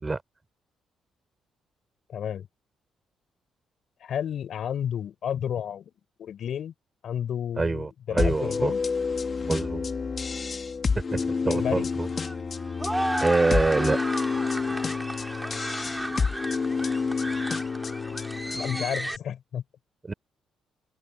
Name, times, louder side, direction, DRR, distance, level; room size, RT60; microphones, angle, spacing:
voice 1, 2.1-2.5 4.0-5.9 6.2-6.7 7.0-8.8 11.4-11.9 18.5-19.6, left 9 dB, 65° left, 4.7 m, -31 dB
voice 2, 7.6-8.7 9.4-9.9 11.1-12.1 13.2-14.0 20.1-20.2, right 3 dB, 25° right, 3.6 m, -25 dB
sound 1, 8.2-18.8, left 5 dB, 40° left, 1.7 m, -29 dB
sound 2, 11.2-19.2, right 1 dB, 5° right, 2.3 m, -34 dB
open air
cardioid pair, 90°, 0 cm